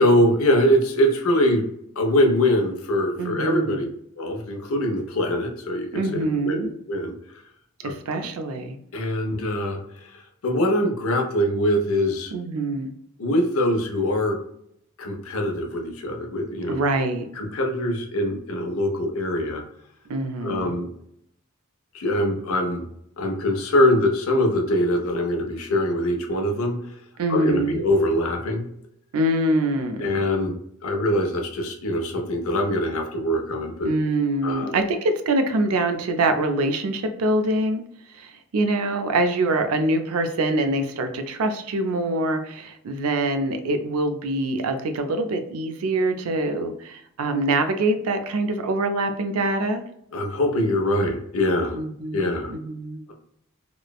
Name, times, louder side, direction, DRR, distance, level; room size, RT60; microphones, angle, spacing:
voice 1, 0.0-1.7 2.0-3.8 4.2-7.1 7.8-8.3 8.9-12.3 13.2-14.4 15.0-16.8 17.4-19.6 20.4-20.9 21.9-22.9 23.2-26.8 27.3-28.7 30.0-30.6 30.8-33.9 34.4-34.8 50.1-51.8 52.1-52.5, left 1 dB, 75° left, 3 dB, 0.6 m, -23 dB
voice 2, 3.2-3.8 5.9-6.7 7.8-8.8 12.3-12.9 16.7-17.3 20.1-20.7 27.2-27.8 29.1-30.1 33.8-37.8 38.1-49.8 51.8-53.0, right 2 dB, 80° right, 7 dB, 0.4 m, -24 dB
3.1 x 2.0 x 2.3 m, 0.72 s
head